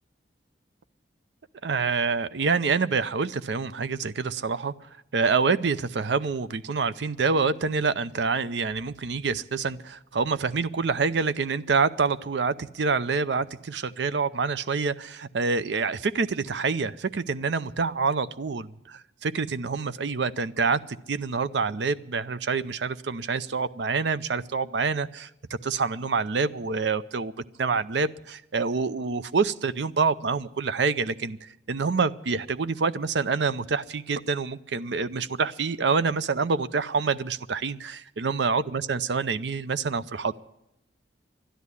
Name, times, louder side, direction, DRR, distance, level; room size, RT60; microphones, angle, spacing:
voice 1, 1.6-4.7 5.1-20.8 21.1-25.3 25.6-27.3 27.6-40.4, right 4 dB, 70° right, 15 dB, 0.6 m, -27 dB
12.5 x 10.5 x 9.6 m, 0.84 s
head